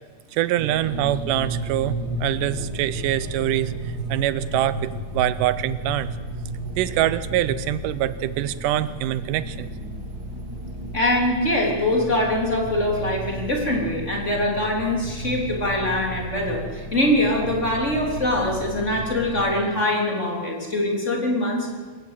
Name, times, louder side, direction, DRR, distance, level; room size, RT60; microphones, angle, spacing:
voice 1, 0.3-6.1 6.8-9.7, right 13 dB, 85° right, 16 dB, 2.4 m, -24 dB
sound 1, 0.6-19.5, right 1 dB, 30° right, 2.7 m, -33 dB
voice 2, 10.9-21.7, left 1 dB, 20° left, 0 dB, 3.7 m, -23 dB
26.0 x 15.0 x 8.3 m, 1.4 s
omnidirectional pair, 3.6 m